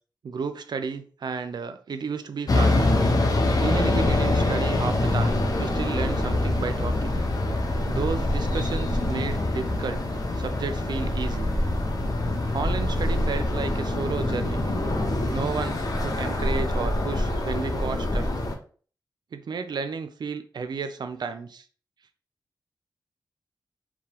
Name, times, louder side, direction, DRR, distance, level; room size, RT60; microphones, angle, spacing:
voice 1, 0.2-2.8 3.6-7.2 7.9-10.0 10.4-11.5 12.5-14.6 15.3-18.3 19.3-21.6, right 5 dB, 65° right, 0.4 m, -32 dB
sound 1, 2.5-18.6, left 2 dB, 50° left, 0.6 m, -25 dB
2.8 x 2.1 x 2.8 m
cardioid pair, 40°, 8 cm